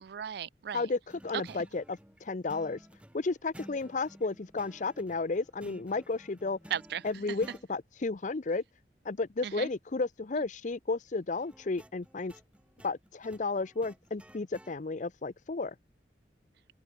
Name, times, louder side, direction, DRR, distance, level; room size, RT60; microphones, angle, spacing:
voice 1, 0.0-0.9 1.3-1.6 6.7-7.4 9.4-9.7 10.3-10.4, right 8 dB, 65° right, 0.4 m, -37 dB
sound 1, 1.1-7.7 11.4-14.8, equal, 5° right, 6.9 m, -54 dB
voice 2, 1.2-2.8 3.1-6.6 7.0-8.6 9.0-12.3 12.8-15.7, left 3 dB, 45° left, 0.6 m, -33 dB
open air
head